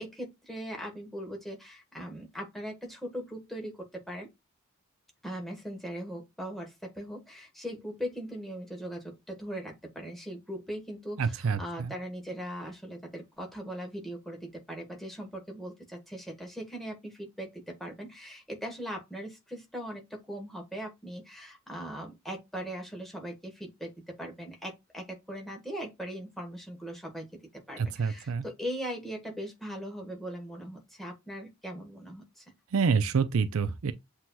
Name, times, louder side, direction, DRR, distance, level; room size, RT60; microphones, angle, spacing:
voice 1, 0.0-4.3 5.2-27.4 27.7-32.4, equal, ahead, 1.2 m, -40 dB
voice 2, 11.2-11.9 27.8-28.4 32.7-33.9, right 5 dB, 85° right, 0.5 m, -27 dB
7.6 x 2.8 x 2.3 m
head